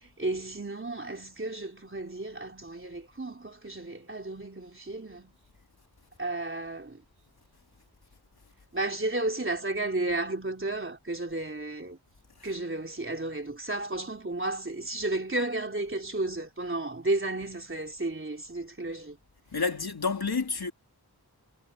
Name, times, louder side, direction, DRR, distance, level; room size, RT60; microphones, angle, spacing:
voice 1, 0.2-5.3 6.2-7.0 8.7-12.0 12.4-19.2, right 2 dB, 30° right, 3.5 m, -33 dB
voice 2, 19.5-20.7, left 4 dB, 65° left, 3.3 m, -29 dB
wide cardioid pair, 75°, 40 cm